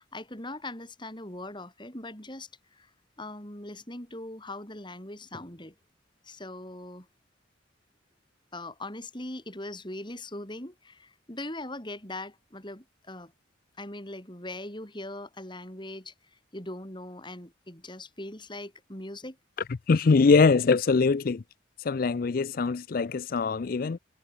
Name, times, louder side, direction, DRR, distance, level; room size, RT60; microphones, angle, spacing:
voice 1, 0.0-2.9 3.2-5.7 6.2-7.1 8.5-13.3 13.8-16.1 16.5-19.4, left 1 dB, 25° left, 4.0 m, -40 dB
voice 2, 19.9-21.4 21.8-24.0, left 4 dB, 45° left, 0.4 m, -22 dB
head